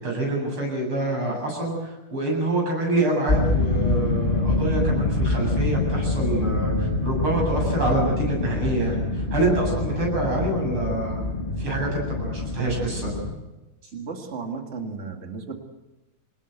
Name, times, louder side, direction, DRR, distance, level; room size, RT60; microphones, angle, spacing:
voice 1, 0.0-11.2 11.6-13.1, right 2 dB, 85° right, -1 dB, 9.0 m, -26 dB
sound 1, 3.3-13.3, left 2 dB, 25° left, 2.6 m, -25 dB
voice 2, 13.9-15.6, right 4 dB, 30° right, 3 dB, 2.4 m, -34 dB
25.5 x 19.0 x 8.1 m, 1.1 s
omnidirectional pair, 2.3 m